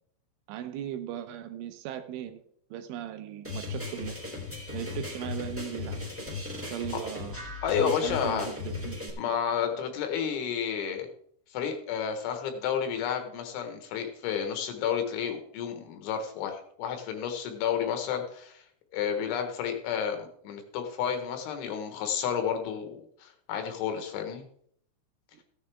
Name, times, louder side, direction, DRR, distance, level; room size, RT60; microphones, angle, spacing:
voice 1, 0.5-2.4 2.7-4.1 4.7-6.0 6.7-7.4 7.8-9.2, right 11 dB, 80° right, 9 dB, 3.2 m, -38 dB
sound 1, 3.4-9.1, left 3 dB, 5° right, 1.6 m, -37 dB
voice 2, 7.6-8.5 9.2-11.1 11.5-18.6 18.9-24.5, left 8 dB, 75° left, 5 dB, 3.7 m, -31 dB
15.5 x 10.0 x 3.5 m, 0.65 s
omnidirectional pair, 5.7 m